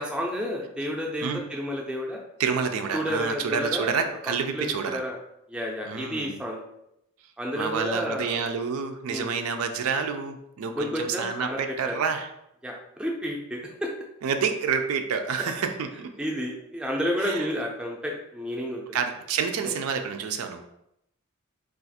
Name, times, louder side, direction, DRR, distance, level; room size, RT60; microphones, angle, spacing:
voice 1, 0.0-2.2 2.9-4.0 4.5-5.2 5.5-6.6 7.4-8.4 9.1-9.3 10.8-11.9 12.6-13.9 16.2-18.8 19.6-19.7, equal, 5° right, -1 dB, 0.4 m, -31 dB
voice 2, 2.4-5.0 5.8-6.4 7.5-12.3 14.2-16.2 17.2-17.5 18.9-20.6, right 6 dB, 80° right, 6 dB, 0.4 m, -28 dB
2.4 x 2.4 x 4.0 m, 0.80 s
head